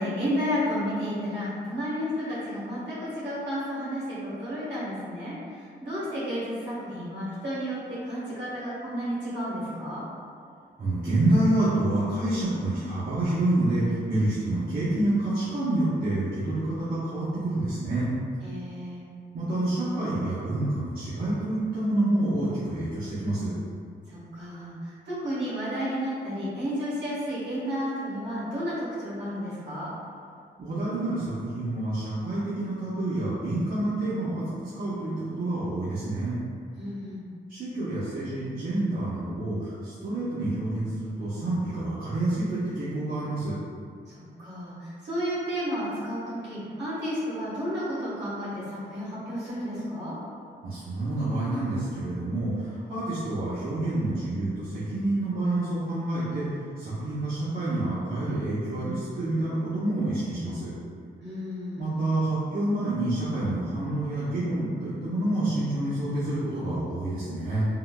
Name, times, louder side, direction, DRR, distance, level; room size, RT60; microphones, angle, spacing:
voice 1, 0.0-10.0 18.4-19.0 24.1-29.9 36.8-37.2 44.1-50.2 61.2-62.0, equal, 75° right, -9 dB, 1.3 m, -32 dB
voice 2, 10.8-18.1 19.3-23.5 30.6-34.4 34.7-35.1 35.4-36.4 37.5-43.5 50.6-56.4 56.8-60.7 61.8-67.6, right 1 dB, 55° right, -11 dB, 0.8 m, -28 dB
3.7 x 2.1 x 2.3 m, 2.2 s
cardioid pair, 90°, 18 cm